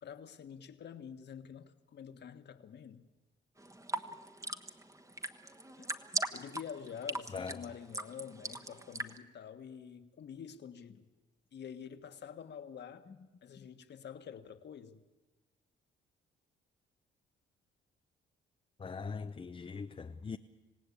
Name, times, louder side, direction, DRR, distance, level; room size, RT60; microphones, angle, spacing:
voice 1, 0.0-3.1 5.8-5.9 6.3-11.1 11.5-13.1 13.4-15.0, left 7 dB, 60° left, 1.7 m, -47 dB
sound 1, 3.6-9.2, right 2 dB, 15° right, 1.4 m, -40 dB
voice 2, 18.8-20.4, left 5 dB, 30° left, 0.8 m, -41 dB
27.0 x 17.5 x 8.6 m
cardioid pair, 90°, 20 cm